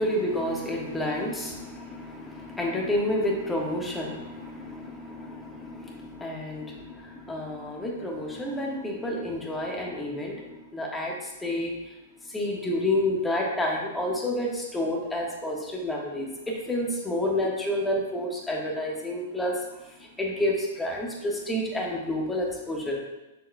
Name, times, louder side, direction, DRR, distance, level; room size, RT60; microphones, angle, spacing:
voice 1, 0.0-11.9 12.2-19.6 19.9-23.0, left 1 dB, 10° left, -1 dB, 1.3 m, -30 dB
6.8 x 6.3 x 2.3 m, 0.99 s
figure-of-eight pair, 105°, 0 cm